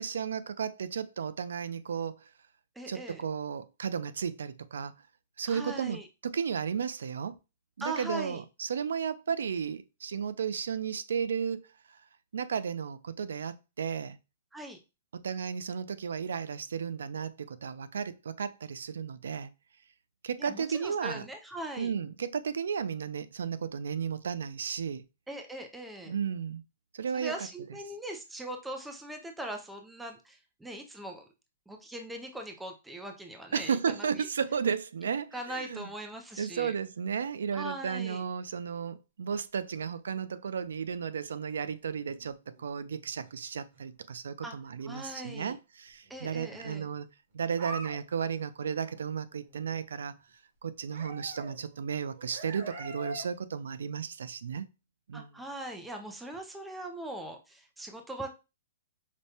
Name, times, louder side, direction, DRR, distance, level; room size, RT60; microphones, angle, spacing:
voice 1, 0.0-2.2 2.9-4.9 5.4-6.0 6.2-7.4 7.8-11.6 12.3-14.2 15.2-19.5 20.2-21.2 21.8-25.0 26.1-26.6 26.9-27.3 33.5-35.9 36.4-47.1 47.3-50.2 50.6-54.7 55.1-55.3, right 7 dB, 85° right, 0.4 m, -34 dB
voice 2, 2.8-3.2 5.5-6.1 7.8-8.4 14.5-14.8 20.4-21.9 25.3-26.1 27.1-31.2 31.7-34.3 35.3-36.7 37.5-38.2 44.4-44.5 44.8-45.6 46.1-46.9 55.1-58.3, right 1 dB, 5° right, 0.3 m, -41 dB
sound 1, 38.1-38.2 38.5-38.7 41.4-42.6 43.2-43.3 43.7-43.8 46.1-46.6 46.9-47.0 47.5-48.0 48.3-48.4 48.6-49.0 49.3-49.7 50.9-53.3 53.6-53.7, right 2 dB, 45° right, 1.0 m, -45 dB
4.9 x 2.1 x 2.7 m
hypercardioid pair, 175°, 0 cm